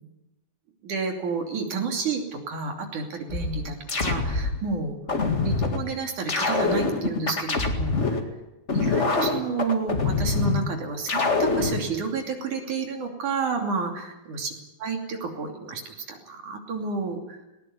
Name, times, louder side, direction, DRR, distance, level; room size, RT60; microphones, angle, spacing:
voice 1, 0.8-5.0 5.4-8.2 8.7-14.5 14.8-17.4, right 5 dB, 60° right, 3 dB, 4.2 m, -30 dB
sound 1, 3.3-4.6 5.1-5.8 6.3-8.2 8.7-10.6 11.1-11.8, left 4 dB, 25° left, 1.6 m, -24 dB
19.5 x 18.5 x 9.6 m, 0.98 s
omnidirectional pair, 4.2 m